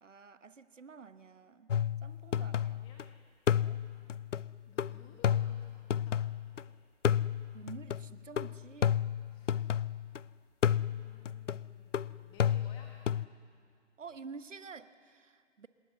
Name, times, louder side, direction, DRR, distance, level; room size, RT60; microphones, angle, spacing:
voice 1, 0.0-1.7 2.0-2.8 3.5-3.8 7.5-9.0 14.0-15.7, right 5 dB, 80° right, 13 dB, 1.2 m, -49 dB
sound 1, 1.7-3.0 3.5-6.6 7.0-10.2 10.6-13.3, left 9 dB, 80° left, 0.6 m, -32 dB
voice 2, 2.1-3.1 4.7-6.7 9.3-9.6 10.8-12.9, left 5 dB, 15° left, 2 dB, 1.3 m, -59 dB
26.5 x 20.5 x 8.0 m, 2.1 s
figure-of-eight pair, 145°, 37 cm